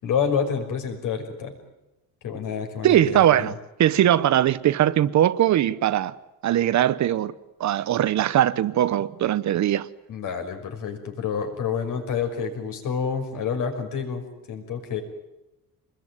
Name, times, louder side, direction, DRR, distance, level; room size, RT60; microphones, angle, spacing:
voice 1, 0.0-1.6 2.2-3.5 10.1-15.0, left 6 dB, 60° left, 5.9 m, -28 dB
voice 2, 2.8-3.5 3.8-6.2 6.4-7.3 7.6-9.9, right 11 dB, 50° right, 1.0 m, -20 dB
26.5 x 21.5 x 9.5 m
cardioid pair, 155°, 35 cm